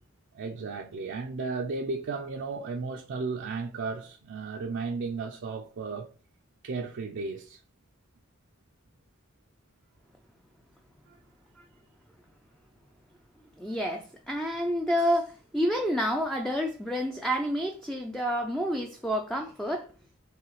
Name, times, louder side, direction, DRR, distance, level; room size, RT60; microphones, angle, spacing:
voice 1, 0.3-6.1 6.6-7.6 11.1-11.2, right 4 dB, 60° right, 0.4 m, -34 dB
voice 2, 13.6-19.9, equal, ahead, 0.4 m, -29 dB
4.7 x 3.2 x 3.0 m
head